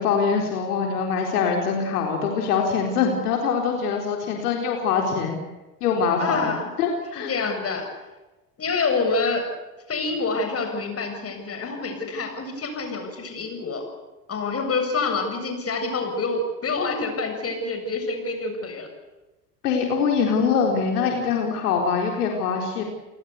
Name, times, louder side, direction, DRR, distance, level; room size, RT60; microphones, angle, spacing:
voice 1, 0.0-5.4 5.8-6.5 6.8-7.3 19.6-22.8, left 6 dB, 70° left, 2 dB, 4.2 m, -23 dB
voice 2, 6.2-6.7 7.1-7.8 8.6-9.4 9.9-13.8 14.3-18.9, left 3 dB, 30° left, 5 dB, 7.7 m, -27 dB
29.5 x 19.5 x 8.4 m, 1.1 s
figure-of-eight pair, 75°, 48 cm